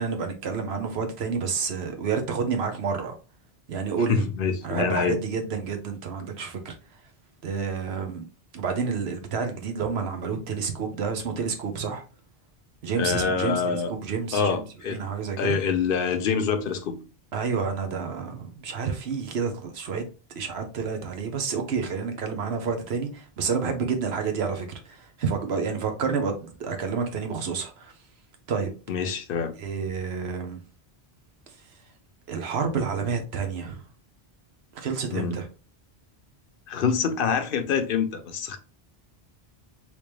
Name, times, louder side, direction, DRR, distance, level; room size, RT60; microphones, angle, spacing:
voice 1, 0.0-3.1 3.7-4.3 4.6-6.7 7.4-8.2 8.5-12.0 12.8-14.6 14.9-15.6 17.3-20.0 20.4-27.9 28.5-28.7 29.6-30.6 32.3-33.8 34.7-35.4, right 5 dB, 80° right, 1.0 m, -29 dB
voice 2, 4.1-5.2 13.0-13.9 14.3-15.0 15.4-17.0 23.6-23.7 28.9-29.5 35.1-35.4 36.7-38.6, left 6 dB, 65° left, 0.7 m, -26 dB
3.4 x 2.9 x 3.1 m
omnidirectional pair, 1.1 m